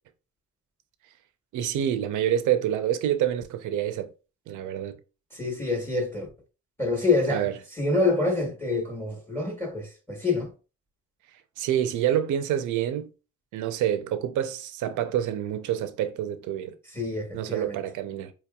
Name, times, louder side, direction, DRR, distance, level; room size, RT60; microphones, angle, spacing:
voice 1, 1.5-4.1 4.5-5.0 7.3-7.5 11.6-13.1 13.5-16.7 17.3-18.3, right 10 dB, 80° right, 0.6 m, -27 dB
voice 2, 5.3-6.3 6.8-10.5 16.9-17.8, left 3 dB, 10° left, 1.1 m, -27 dB
4.5 x 2.9 x 2.3 m
cardioid pair, 90°, 30 cm